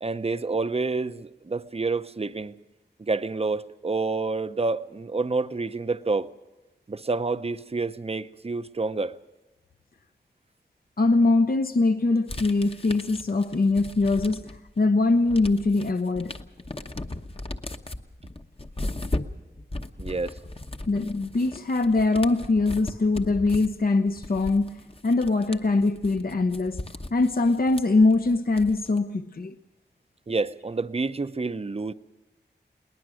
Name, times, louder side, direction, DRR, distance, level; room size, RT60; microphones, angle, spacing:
voice 1, 0.0-2.5 3.0-6.3 6.9-9.2 20.0-20.4 30.3-31.9, right 3 dB, 35° right, 0.6 m, -28 dB
voice 2, 11.0-16.4 20.9-26.8 27.1-29.6, left 3 dB, 55° left, 0.7 m, -23 dB
sound 1, 12.3-14.7 15.0-29.0, left 2 dB, 30° left, 0.9 m, -37 dB
21.5 x 19.5 x 6.3 m
wide cardioid pair, 70°, 18 cm